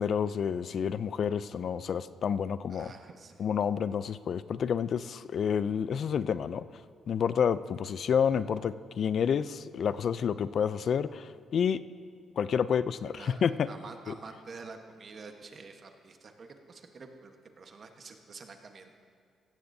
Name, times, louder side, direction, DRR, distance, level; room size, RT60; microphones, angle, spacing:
voice 1, 0.0-2.9 3.4-6.6 7.1-11.8 12.4-13.7 14.1-14.2, left 7 dB, 55° left, 15 dB, 0.3 m, -29 dB
voice 2, 2.7-3.4 13.1-13.4 13.7-18.9, right 4 dB, 45° right, 5 dB, 1.1 m, -48 dB
16.5 x 14.5 x 2.7 m, 2.3 s
cardioid pair, 115°, 0 cm